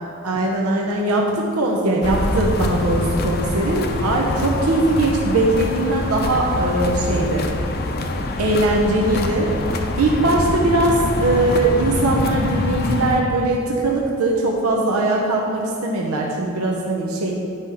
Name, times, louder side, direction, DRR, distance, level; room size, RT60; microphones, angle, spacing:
voice 1, 0.2-7.5 8.4-9.5 10.0-17.3, right 2 dB, 80° right, -2 dB, 0.8 m, -20 dB
sound 1, 2.0-13.2, left 2 dB, 45° left, 0.6 m, -24 dB
9.9 x 4.9 x 5.8 m, 2.9 s
head